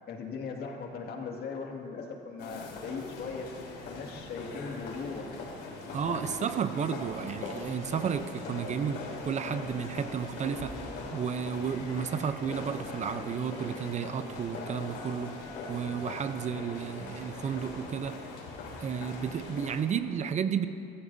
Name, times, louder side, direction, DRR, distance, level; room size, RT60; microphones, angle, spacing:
voice 1, 0.1-3.6 3.9-5.4, left 5 dB, 60° left, 1 dB, 2.2 m, -39 dB
sound 1, 2.4-19.8, left 3 dB, 75° left, 3.7 m, -41 dB
voice 2, 5.9-10.7 11.1-15.3 15.7-18.2 18.8-20.7, right 7 dB, 40° right, 10 dB, 0.7 m, -32 dB
24.0 x 14.0 x 2.8 m, 2.6 s
cardioid pair, 105°, 18 cm